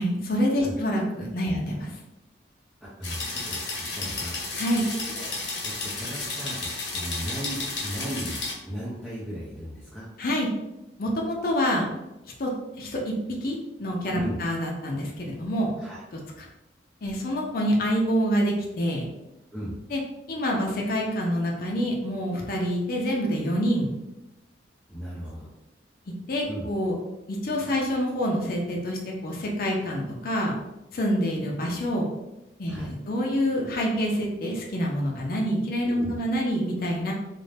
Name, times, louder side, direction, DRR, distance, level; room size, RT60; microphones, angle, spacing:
voice 1, 0.0-1.9 4.6-4.8 10.2-10.5 11.0-11.9 12.4-12.5 12.8-13.1 13.4-15.7 16.1-16.5 17.0-19.1 19.9-20.0 20.3-23.9 26.3-26.9 27.3-30.5 30.9-32.1 32.6-37.1, equal, 50° left, -1 dB, 0.4 m, -26 dB
voice 2, 2.8-4.4 5.0-5.3 5.6-10.1 14.1-14.4 15.8-16.0 19.5-19.8 24.9-25.5 26.4-26.7 32.7-32.9 35.8-36.2, equal, ahead, -10 dB, 0.5 m, -36 dB
sound 1, 3.0-8.5, left 3 dB, 65° left, 0.9 m, -32 dB
2.5 x 2.1 x 3.2 m, 0.95 s
head